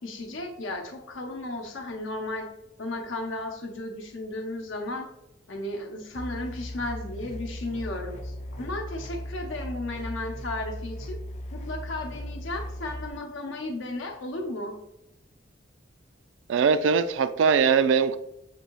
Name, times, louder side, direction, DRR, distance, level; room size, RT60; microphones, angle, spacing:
voice 1, 0.0-2.5 2.8-5.1 5.5-11.2 11.5-14.8, left 2 dB, 80° left, 3 dB, 0.8 m, -34 dB
sound 1, 6.1-13.1, left 1 dB, 35° left, 0.4 m, -37 dB
voice 2, 16.5-18.2, right 6 dB, 75° right, 13 dB, 0.3 m, -21 dB
6.8 x 2.7 x 2.9 m, 0.88 s
head